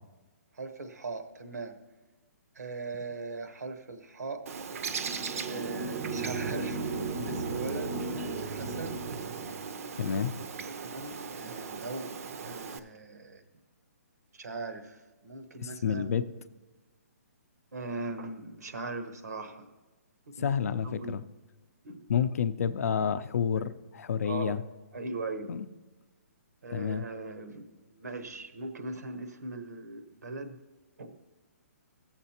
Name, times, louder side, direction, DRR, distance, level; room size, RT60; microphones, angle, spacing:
voice 1, 0.5-1.8 2.5-4.4 5.5-9.0 10.8-13.4 14.3-16.1 17.7-19.7 20.4-20.5 20.8-21.1 21.8-22.0 23.6-23.7 24.2-24.6 24.9-25.5 26.6-30.6 31.0-31.2, right 3 dB, 85° right, 8 dB, 1.0 m, -40 dB
Bird, 4.5-12.8, right 5 dB, 65° right, 0.6 m, -39 dB
sound 1, 4.8-9.8, right 3 dB, 20° right, 0.5 m, -36 dB
voice 2, 10.0-10.3 15.6-16.2 20.4-21.2 22.1-24.6 25.5-25.7 26.7-27.0, left 7 dB, 65° left, 13 dB, 0.5 m, -29 dB
14.0 x 7.2 x 2.9 m, 1.2 s
hypercardioid pair, 155°, 9 cm